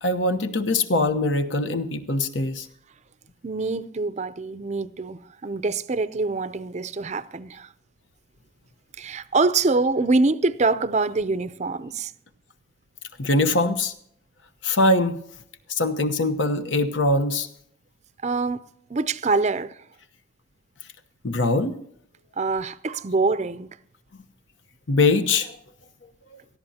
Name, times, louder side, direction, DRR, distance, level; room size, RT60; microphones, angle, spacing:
voice 1, 0.0-2.7 13.2-13.9 14.6-15.2 15.7-17.5 21.2-21.8 24.9-25.5, left 2 dB, 80° left, 1.0 m, -22 dB
voice 2, 3.4-7.7 9.0-12.1 18.2-18.6 18.9-19.8 22.4-23.7, right 3 dB, 35° right, 0.5 m, -24 dB
18.5 x 13.0 x 2.8 m
head